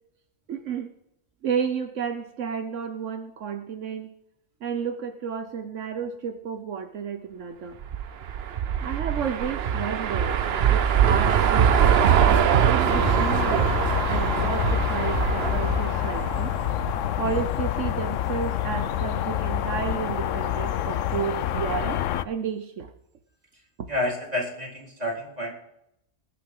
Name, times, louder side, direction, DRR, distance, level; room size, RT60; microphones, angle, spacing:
voice 1, 0.5-0.9 1.4-4.1 4.6-7.8 8.8-10.4 10.7-13.7 14.1-16.5 17.2-22.9, right 7 dB, 80° right, 7 dB, 1.3 m, -32 dB
sound 1, 7.8-17.1, right 8 dB, 60° right, 1.0 m, -22 dB
sound 2, 12.8-22.3, left 11 dB, 85° left, 1.0 m, -27 dB
voice 2, 23.9-25.5, left 1 dB, 30° right, -3 dB, 4.4 m, -29 dB
20.5 x 10.0 x 3.8 m, 0.80 s
omnidirectional pair, 1.3 m